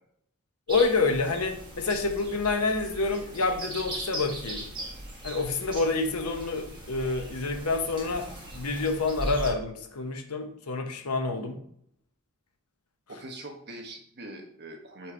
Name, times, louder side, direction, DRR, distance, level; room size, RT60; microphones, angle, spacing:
voice 1, 0.7-4.7 5.2-8.3 8.5-11.6, left 3 dB, 85° left, 5 dB, 0.9 m, -28 dB
sound 1, 0.7-9.5, right 1 dB, 20° right, 1.4 m, -39 dB
voice 2, 13.1-15.1, right 1 dB, 50° right, 2 dB, 1.2 m, -43 dB
4.8 x 4.4 x 4.4 m, 0.68 s
head